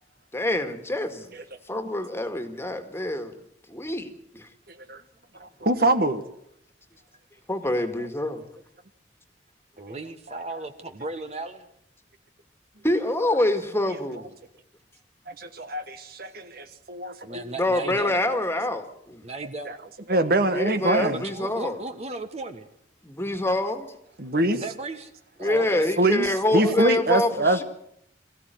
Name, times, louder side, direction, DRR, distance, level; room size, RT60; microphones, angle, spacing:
voice 1, 0.3-1.3 1.7-3.4 3.7-4.1 4.3-4.5 7.5-8.4 12.8-14.3 17.6-19.2 20.5-21.8 23.0-23.9 25.4-27.6, left 1 dB, 15° left, 2.0 m, -26 dB
voice 2, 4.7-5.0 5.4-6.2 15.3-17.4 18.0-18.2 20.1-21.2 24.2-24.6 26.0-27.6, right 2 dB, 55° right, 1.5 m, -24 dB
voice 3, 9.8-11.6 17.2-18.2 19.2-19.7 21.0-22.7 24.5-25.1 25.4-25.9 26.5-26.9, right 2 dB, 35° right, 1.4 m, -35 dB
22.5 x 15.5 x 9.3 m
head